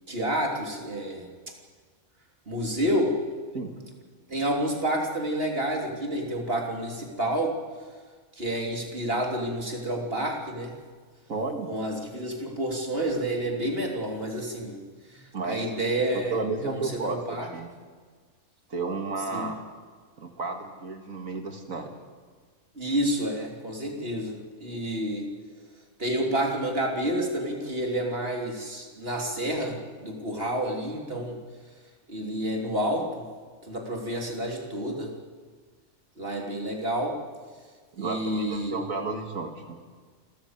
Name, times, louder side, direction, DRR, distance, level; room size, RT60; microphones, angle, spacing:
voice 1, 0.1-1.3 2.5-3.2 4.3-7.6 8.4-10.8 11.7-14.8 15.1-16.4 16.6-17.5 19.3-19.5 22.8-25.3 26.0-31.4 32.1-33.2 33.6-35.1 36.2-37.2 38.0-38.9, right 1 dB, 45° right, 1 dB, 3.5 m, -29 dB
voice 2, 11.3-11.7 15.3-15.6 16.1-17.2 17.5-17.7 18.7-19.6 20.2-21.9 38.0-39.8, right 3 dB, 70° right, 4 dB, 2.5 m, -32 dB
27.0 x 14.0 x 8.1 m, 1.5 s
omnidirectional pair, 1.4 m